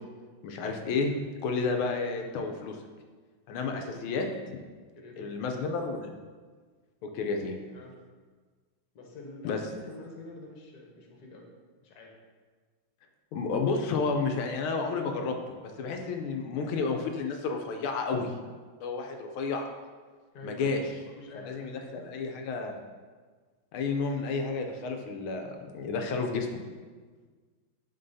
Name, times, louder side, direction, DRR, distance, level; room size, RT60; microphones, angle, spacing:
voice 1, 0.4-1.1 1.4-2.8 3.5-4.6 5.2-6.1 7.0-7.6 9.4-9.6 13.3-18.4 18.8-19.7 20.4-20.8 21.5-22.8 23.7-26.5, left 4 dB, 80° left, 4 dB, 1.4 m, -31 dB
voice 2, 3.6-4.0 4.9-5.3 7.7-7.9 8.9-11.4 11.8-12.1 20.3-22.0, left 2 dB, 55° left, 0 dB, 1.4 m, -47 dB
10.5 x 3.8 x 2.7 m, 1.5 s
omnidirectional pair, 2.4 m